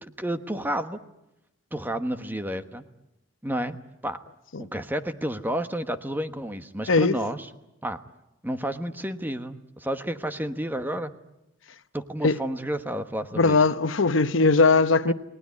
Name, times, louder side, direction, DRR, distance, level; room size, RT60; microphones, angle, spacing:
voice 1, 0.0-1.0 1.7-2.8 3.4-3.8 4.0-4.2 4.6-7.5 7.8-8.0 8.4-11.1 11.9-13.6 15.1-15.2, right 1 dB, 10° right, 1.2 m, -31 dB
voice 2, 13.3-15.1, left 3 dB, 75° left, 0.9 m, -20 dB
30.0 x 19.5 x 9.7 m
head